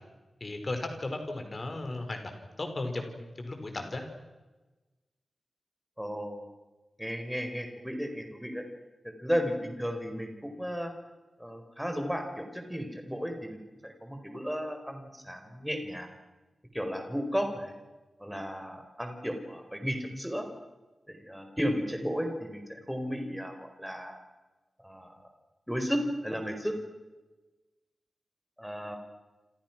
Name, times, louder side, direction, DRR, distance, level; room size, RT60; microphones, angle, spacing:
voice 1, 0.4-4.0, left 2 dB, 35° left, 5 dB, 4.8 m, -36 dB
voice 2, 6.0-6.5 7.0-8.6 9.2-10.9 11.4-16.1 16.7-17.7 18.2-20.5 21.1-24.2 24.8-25.2 25.7-26.7 28.6-29.0, equal, ahead, 5 dB, 4.6 m, -34 dB
29.0 x 27.0 x 6.1 m, 1.2 s
wide cardioid pair, 140°, 0 cm